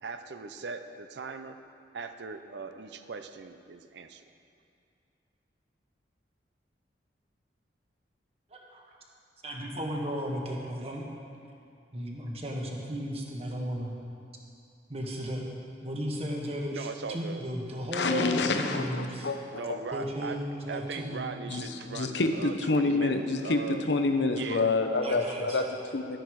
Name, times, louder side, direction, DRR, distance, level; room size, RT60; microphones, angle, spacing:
voice 1, 0.0-1.6 1.9-4.2 16.7-17.4 19.5-20.4 20.7-23.8 24.3-24.7, right 4 dB, 75° right, 9 dB, 0.5 m, -39 dB
voice 2, 8.5-8.8 9.4-11.1 11.9-13.9 14.9-15.5 15.8-19.3 19.9-21.3 25.0-25.6, equal, 35° right, -1 dB, 1.4 m, -35 dB
voice 3, 17.9-19.8 21.5-21.6 21.9-26.2, left 3 dB, 75° left, 6 dB, 0.8 m, -28 dB
12.5 x 10.0 x 4.7 m, 2.5 s
head